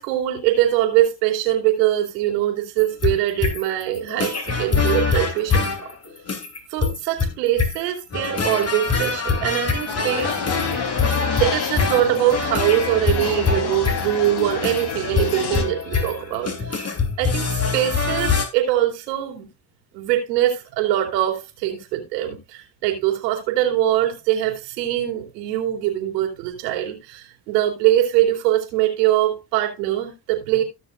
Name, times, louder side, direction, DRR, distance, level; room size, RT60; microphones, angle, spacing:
voice 1, 0.0-5.9 6.7-10.4 11.4-19.5 19.9-30.6, right 13 dB, 90° right, 3.0 m, -22 dB
sound 1, 2.8-18.5, left 5 dB, 30° left, 3.3 m, -24 dB
sound 2, 9.9-15.6, left 7 dB, 55° left, 3.2 m, -29 dB
16.5 x 6.5 x 2.5 m
supercardioid pair, 70°, 48 cm